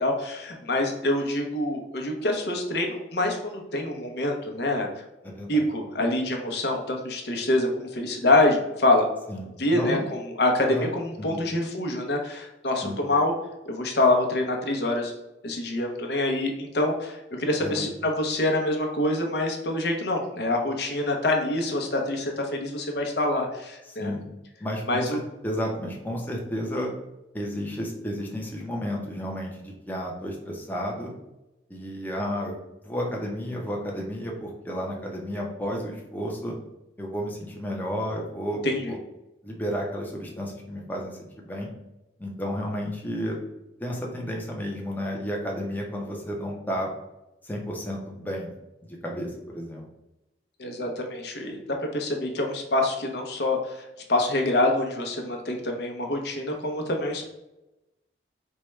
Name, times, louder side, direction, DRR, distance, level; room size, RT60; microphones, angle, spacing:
voice 1, 0.0-4.9 5.5-9.1 9.6-13.3 13.7-15.1 15.4-24.1 24.9-25.2 38.6-39.0 50.6-51.6 51.9-57.3, left 1 dB, 70° left, 2 dB, 0.8 m, -26 dB
voice 2, 5.2-5.6 9.3-9.5 9.7-10.1 10.7-10.9 11.2-11.4 12.8-13.0 17.6-17.9 23.9-24.2 24.6-26.9 27.3-31.1 31.7-32.6 32.8-36.6 37.0-38.6 38.9-39.0 39.4-41.7 42.2-43.4 43.8-46.9 47.4-48.5 49.0-49.9, equal, 10° left, -1 dB, 0.6 m, -32 dB
4.5 x 2.2 x 3.1 m, 0.96 s
head